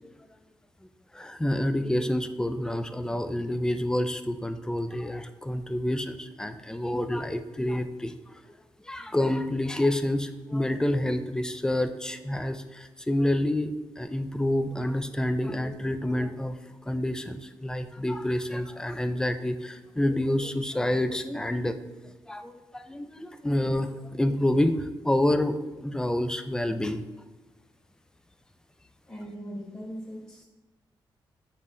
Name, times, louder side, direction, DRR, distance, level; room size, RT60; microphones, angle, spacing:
voice 1, 1.1-8.1 8.9-16.6 16.9-21.8 22.3-27.0, left 1 dB, 10° left, 9 dB, 0.3 m, -28 dB
voice 2, 29.0-30.4, equal, 25° left, -4 dB, 1.2 m, -39 dB
5.6 x 2.1 x 3.7 m, 1.1 s
cardioid pair, 65°, 9 cm